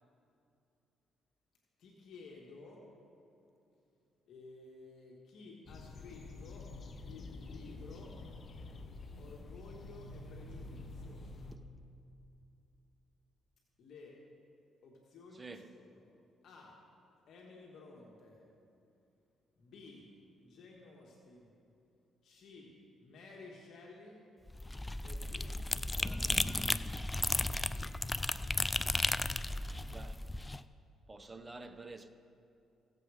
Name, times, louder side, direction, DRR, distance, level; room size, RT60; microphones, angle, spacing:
voice 1, 1.8-2.8 4.3-6.7 7.0-8.1 9.2-11.2 13.8-14.1 14.8-16.1 16.4-16.7 17.3-18.4 19.6-20.1 20.3-21.5 22.2-22.7 23.0-24.2 25.0-25.6 25.9-26.8, left 3 dB, 70° left, 1.7 m, -54 dB
sound 1, 5.7-11.6, left 2 dB, 45° left, 0.8 m, -48 dB
voice 2, 15.4-15.7 29.8-30.2 31.1-32.1, right 3 dB, 20° right, 0.7 m, -49 dB
sound 2, 24.5-30.6, left 2 dB, 15° left, 0.3 m, -34 dB
16.0 x 7.6 x 4.9 m
cardioid pair, 90°, 0 cm